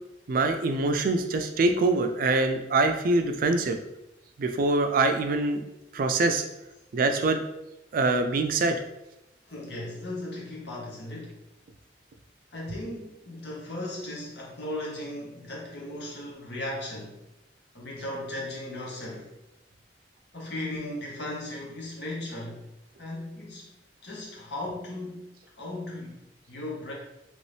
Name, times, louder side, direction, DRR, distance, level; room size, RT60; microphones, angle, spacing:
voice 1, 0.3-3.8 4.4-5.6 5.9-6.4 6.9-7.4 7.9-8.8, right 3 dB, 55° right, 7 dB, 0.4 m, -24 dB
voice 2, 9.4-11.3 12.5-17.2 17.7-19.3 20.3-22.7 23.0-23.7 24.0-25.3 25.6-26.9, left 1 dB, 75° left, -3 dB, 1.1 m, -37 dB
3.0 x 2.7 x 3.2 m, 0.91 s
head